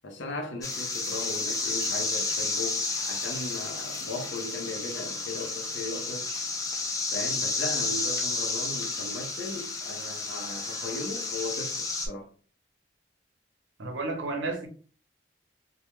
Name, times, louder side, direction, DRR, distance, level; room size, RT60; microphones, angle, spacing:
voice 1, 0.0-6.3 7.1-12.3, left 2 dB, 90° left, 0.6 m, -37 dB
sound 1, 0.6-12.1, left 3 dB, 20° left, 0.3 m, -31 dB
voice 2, 13.8-14.7, right 3 dB, 85° right, 0.7 m, -31 dB
2.3 x 2.2 x 3.0 m
head